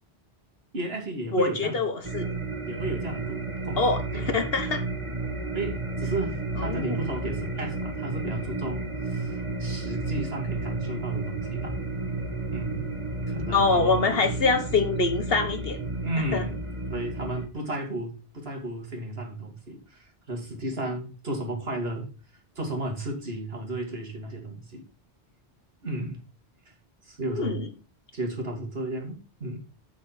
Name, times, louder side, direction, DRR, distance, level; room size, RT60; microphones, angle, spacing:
voice 1, 0.7-1.8 2.7-4.5 5.5-11.8 12.5-12.9 13.3-14.1 16.0-16.5 16.9-22.1 22.6-24.8 25.8-26.2 26.7-26.8 27.0-27.6 28.1-29.6, right 1 dB, 65° right, 2 dB, 2.7 m, -33 dB
voice 2, 1.3-2.3 3.8-4.8 6.6-7.0 13.5-15.8 16.3-16.4 27.3-27.7, left 3 dB, 65° left, 8 dB, 1.5 m, -25 dB
sound 1, 2.0-17.5, right 2 dB, 30° right, 1.3 m, -32 dB
7.2 x 7.1 x 5.7 m, 0.32 s
omnidirectional pair, 1.1 m